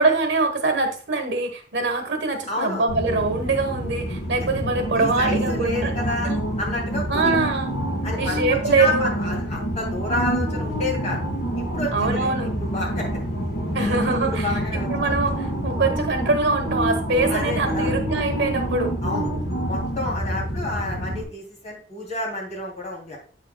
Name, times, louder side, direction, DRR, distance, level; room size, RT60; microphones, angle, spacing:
voice 1, 0.0-5.9 6.2-6.4 7.1-7.7 8.2-9.1 11.9-12.5 13.7-14.5 14.9-18.9, right 3 dB, 80° right, 6 dB, 1.2 m, -23 dB
voice 2, 2.5-2.9 4.4-4.5 4.9-6.3 6.6-7.4 8.0-11.2 11.5-12.3 12.6-13.1 13.8-14.0 14.3-14.9 17.3-17.9 19.0-19.3 19.7-23.2, left 2 dB, 40° left, -2 dB, 2.9 m, -29 dB
sound 1, 2.9-21.2, equal, 55° left, 2.5 m, -27 dB
8.2 x 6.7 x 2.3 m, 0.40 s
head